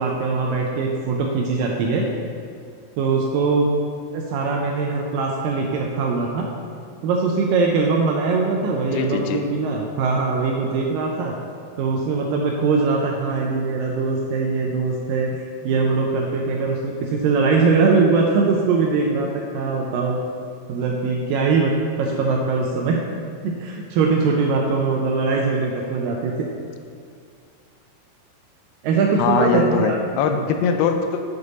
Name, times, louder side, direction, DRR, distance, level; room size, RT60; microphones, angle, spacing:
voice 1, 0.0-2.1 3.0-3.7 4.1-6.5 7.0-11.3 11.8-20.2 20.7-23.0 23.4-26.5 28.8-30.0 30.3-30.4, right 4 dB, 80° right, 0 dB, 2.0 m, -21 dB
voice 2, 8.9-9.5 29.2-31.2, left 6 dB, 85° left, 6 dB, 2.4 m, -22 dB
7.9 x 5.3 x 4.0 m, 2.2 s
omnidirectional pair, 4.4 m